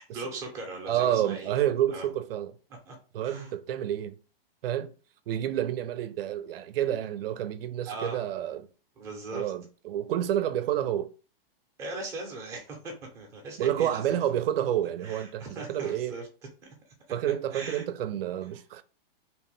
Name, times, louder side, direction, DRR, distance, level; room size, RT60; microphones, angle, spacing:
voice 1, 0.0-1.5 1.9-2.1 2.9-3.0 3.2-3.5 7.9-8.3 9.0-9.5 11.8-14.2 15.0-16.3 16.6-16.7 17.5-17.8, right 2 dB, 10° right, 0.5 m, -39 dB
voice 2, 0.9-2.5 3.1-4.2 4.6-4.9 5.3-8.7 9.3-11.1 13.6-16.1 17.1-18.8, right 11 dB, 70° right, 0.5 m, -29 dB
2.9 x 2.1 x 3.0 m
hypercardioid pair, 160°, 30 cm